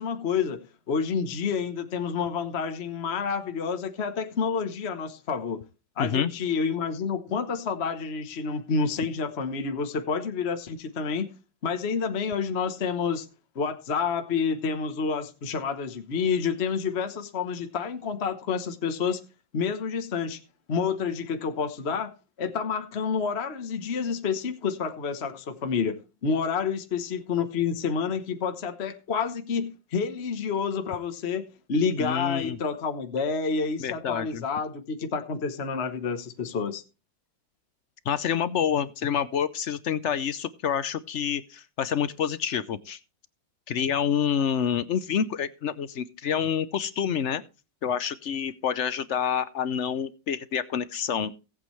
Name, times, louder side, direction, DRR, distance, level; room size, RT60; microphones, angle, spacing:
voice 1, 0.0-5.6 6.0-11.3 11.6-13.3 13.5-19.2 19.5-20.4 20.7-22.1 22.4-25.9 26.2-36.8, left 5 dB, 40° left, 1.2 m, -29 dB
voice 2, 6.0-6.3 32.0-32.6 33.8-34.4 38.1-43.0 43.7-47.4 47.8-51.3, left 8 dB, 60° left, 0.7 m, -28 dB
18.5 x 8.4 x 3.1 m
omnidirectional pair, 2.0 m